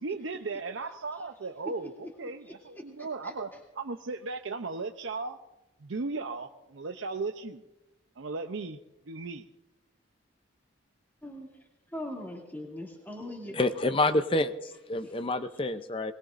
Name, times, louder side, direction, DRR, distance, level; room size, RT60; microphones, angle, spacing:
voice 1, 0.0-5.4 5.8-7.6 8.2-8.8 9.1-9.5, right 3 dB, 85° right, 0.7 m, -36 dB
voice 2, 11.9-13.6, left 1 dB, 10° left, 2.5 m, -39 dB
voice 3, 13.5-16.1, left 2 dB, 25° left, 0.6 m, -28 dB
22.0 x 21.0 x 2.6 m
head